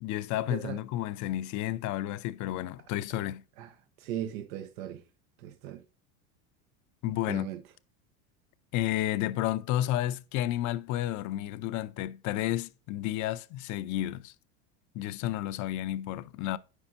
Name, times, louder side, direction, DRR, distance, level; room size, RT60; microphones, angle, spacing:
voice 1, 0.0-3.4 7.0-7.5 8.7-14.3 14.9-16.6, left 13 dB, 45° left, 0.6 m, -31 dB
voice 2, 3.6-5.0 5.4-5.8 7.3-7.6, right 11 dB, 75° right, 0.9 m, -38 dB
11.5 x 4.9 x 2.7 m
supercardioid pair, 105°, 40 cm